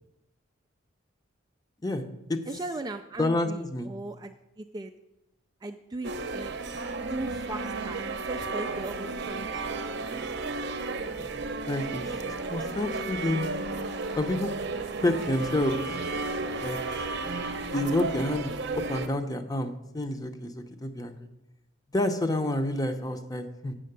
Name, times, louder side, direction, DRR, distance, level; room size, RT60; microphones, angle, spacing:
voice 1, 2.5-4.9 5.6-6.5 7.0-9.7, right 2 dB, 20° right, 7 dB, 0.3 m, -38 dB
voice 2, 3.2-3.9 11.2-11.3 11.7-12.1 12.5-13.5 14.2-14.5 15.0-15.8 16.6-16.8 17.7-18.6 18.9-21.2 21.9-23.7, left 1 dB, 20° left, 7 dB, 0.7 m, -28 dB
sound 1, 6.0-19.1, right 3 dB, 55° right, 0.7 m, -33 dB
7.6 x 6.3 x 8.0 m, 0.94 s
head